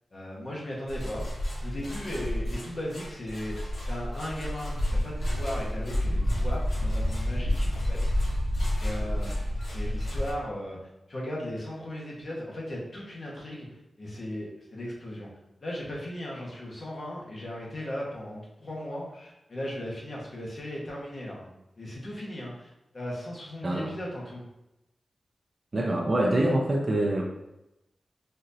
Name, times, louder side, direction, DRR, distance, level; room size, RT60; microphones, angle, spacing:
voice 1, 0.1-1.2 1.6-8.1 8.8-9.4 9.7-10.8 11.1-15.3 15.6-24.4, left 1 dB, 55° left, -4 dB, 1.3 m, -37 dB
sound 1, 0.9-10.3, left 1 dB, 75° left, 1.1 m, -29 dB
voice 2, 25.7-27.2, right 1 dB, 45° right, -1 dB, 0.6 m, -25 dB
4.2 x 2.7 x 2.7 m, 0.91 s
cardioid pair, 65°, 0 cm